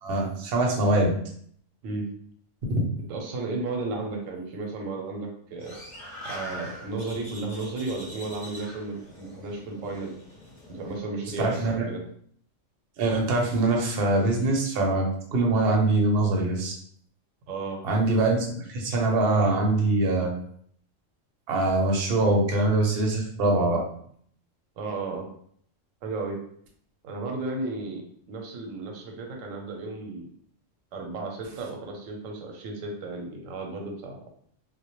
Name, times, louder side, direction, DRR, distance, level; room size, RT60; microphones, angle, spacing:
voice 1, 0.0-1.1 2.7-2.8 11.4-11.9 13.0-15.1 15.3-16.8 17.8-20.3 21.5-23.8, right 2 dB, 60° right, 0 dB, 0.7 m, -23 dB
voice 2, 3.1-5.8 6.3-10.2 10.7-12.0 17.5-17.8 24.8-25.3 26.0-26.4 27.0-28.0 28.3-30.3 30.9-34.2, right 3 dB, 90° right, 2 dB, 1.0 m, -34 dB
sound 1, 5.6-11.0, equal, 30° left, 0.8 m, -43 dB
2.1 x 2.1 x 2.8 m, 0.62 s
omnidirectional pair, 1.3 m